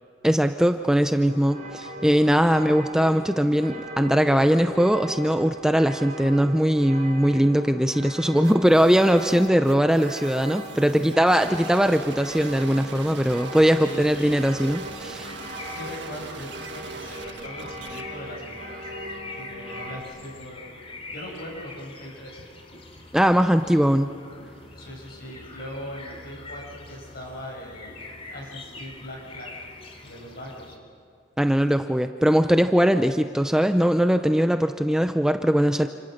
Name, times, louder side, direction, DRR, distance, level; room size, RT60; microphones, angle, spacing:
voice 1, 0.2-15.3 23.1-24.1 31.4-35.9, equal, 5° right, 7 dB, 0.6 m, -20 dB
sound 1, 1.3-20.0, right 1 dB, 45° right, 3.4 m, -39 dB
sound 2, 8.3-18.0, right 4 dB, 65° right, 1.7 m, -42 dB
voice 2, 10.8-11.2 13.8-14.1 15.7-18.9 19.4-20.8 21.1-22.4 24.7-28.0 28.3-29.5 30.0-30.7, equal, 55° left, -1 dB, 7.1 m, -40 dB
sound 3, 14.1-30.8, left 2 dB, 35° left, 2.8 m, -43 dB
28.5 x 27.5 x 6.6 m, 2.2 s
head